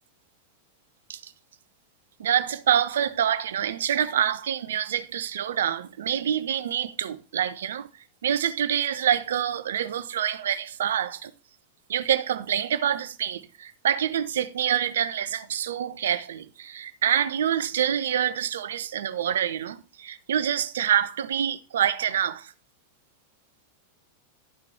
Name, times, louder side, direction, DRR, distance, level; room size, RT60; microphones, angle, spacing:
voice 1, 2.2-7.9 8.2-11.3 11.9-22.5, right 9 dB, 60° right, 0.6 m, -26 dB
11.5 x 6.0 x 4.4 m
figure-of-eight pair, 90°, 0 cm